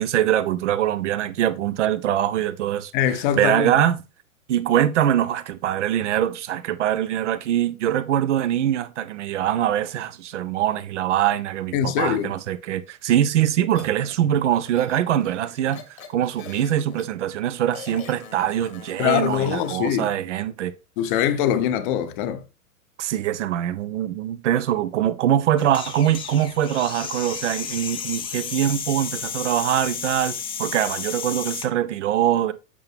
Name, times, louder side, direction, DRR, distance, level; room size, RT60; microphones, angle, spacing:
voice 1, 0.0-2.9 3.4-4.0 4.5-20.7 23.0-32.5, right 11 dB, 55° right, 0.8 m, -23 dB
voice 2, 2.9-3.7 11.7-12.3 19.0-20.1 21.0-22.4, left 10 dB, 35° left, 0.9 m, -23 dB
sound 1, 13.7-14.1 14.7-17.0 17.7-19.9, left 5 dB, 75° left, 1.7 m, -43 dB
sound 2, 25.6-31.7, left 7 dB, 10° left, 0.6 m, -32 dB
8.6 x 5.8 x 3.4 m
figure-of-eight pair, 110°, 43 cm